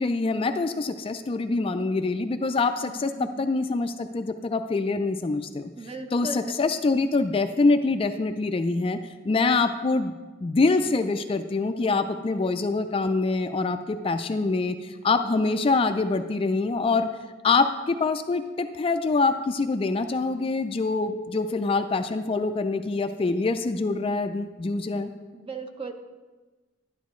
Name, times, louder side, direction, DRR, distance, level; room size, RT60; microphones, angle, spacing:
voice 1, 0.0-5.7 6.1-9.0 9.3-10.1 10.4-17.1 17.4-25.1, left 3 dB, 30° left, 8 dB, 0.3 m, -25 dB
voice 2, 2.9-3.4 5.8-6.4 15.4-15.9 25.3-25.9, right 2 dB, 30° right, 6 dB, 0.7 m, -37 dB
11.5 x 10.0 x 3.1 m, 1.3 s
head